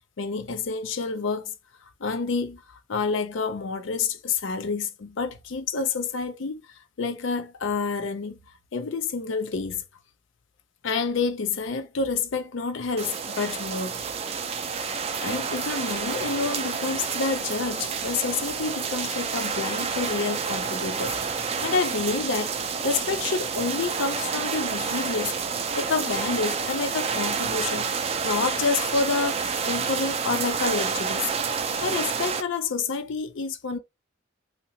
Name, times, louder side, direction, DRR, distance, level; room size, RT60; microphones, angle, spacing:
voice 1, 0.2-1.5 2.0-6.6 7.0-8.4 8.7-9.8 10.8-14.0 14.9-21.1 21.6-25.3 25.8-27.9 28.2-31.3 31.8-33.8, left 4 dB, 70° left, 0.5 m, -28 dB
sound 1, 13.0-32.4, right 5 dB, 30° right, 0.3 m, -29 dB
2.8 x 2.8 x 2.6 m
head